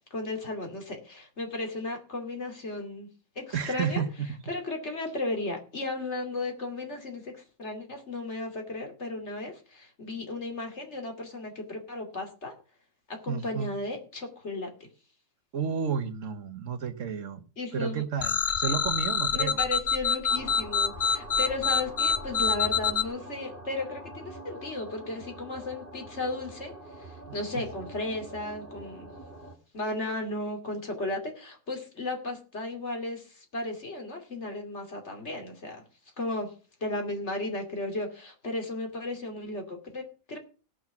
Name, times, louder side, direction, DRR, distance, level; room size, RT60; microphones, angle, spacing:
voice 1, 0.0-3.1 3.4-4.0 4.5-12.5 13.1-14.7 17.6-18.0 19.3-29.1 29.7-35.8 36.2-36.5 36.8-40.4, left 2 dB, 55° left, 3 dB, 2.9 m, -35 dB
voice 2, 3.5-4.1 13.3-13.7 15.5-17.4 17.7-19.6 27.5-27.6, right 6 dB, 70° right, 8 dB, 1.4 m, -31 dB
sound 1, 18.2-23.0, left 6 dB, 40° left, 1.1 m, -26 dB
sound 2, 20.3-29.5, right 1 dB, 40° right, 2.5 m, -44 dB
17.5 x 6.3 x 5.9 m, 0.37 s
omnidirectional pair, 1.4 m